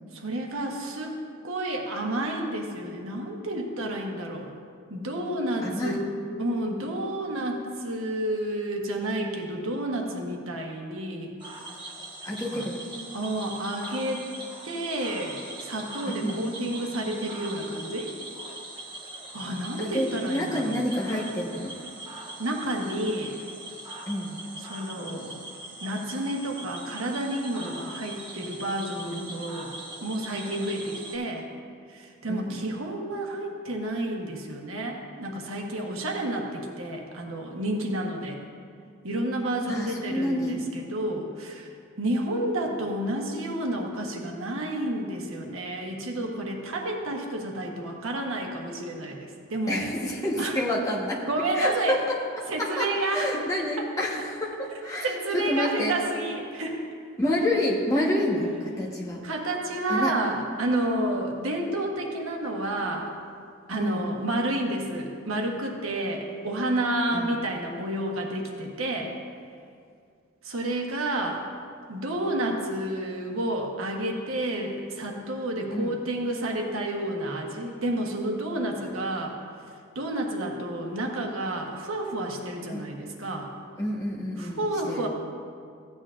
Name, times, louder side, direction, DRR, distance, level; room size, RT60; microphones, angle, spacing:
voice 1, 0.1-1.2 1.4-4.5 4.9-6.1 6.4-11.3 12.5-12.7 13.1-14.3 14.6-18.2 19.3-20.9 22.4-23.3 24.6-25.4 25.8-29.7 30.0-31.5 31.9-38.4 39.0-41.7 42.0-49.9 50.4-50.6 51.3-52.0 52.5-53.5 53.8-53.9 55.0-56.8 59.2-63.1 63.7-69.1 70.4-71.4 71.9-79.4 79.9-83.5 84.4-85.1, right 1 dB, 70° right, 1 dB, 1.2 m, -30 dB
voice 2, 5.6-6.0 12.2-12.8 16.0-16.4 19.8-21.7 24.1-24.4 32.3-32.7 39.6-40.6 49.7-51.2 51.5-55.9 57.2-59.2 59.9-60.1 63.8-64.2 67.1-67.4 75.7-76.0 82.7-82.9 83.8-85.1, left 1 dB, 15° left, -3 dB, 1.2 m, -28 dB
Cricket / Frog, 11.4-31.2, right 2 dB, 20° right, 1.2 m, -41 dB
15.0 x 9.1 x 2.5 m, 2.2 s
head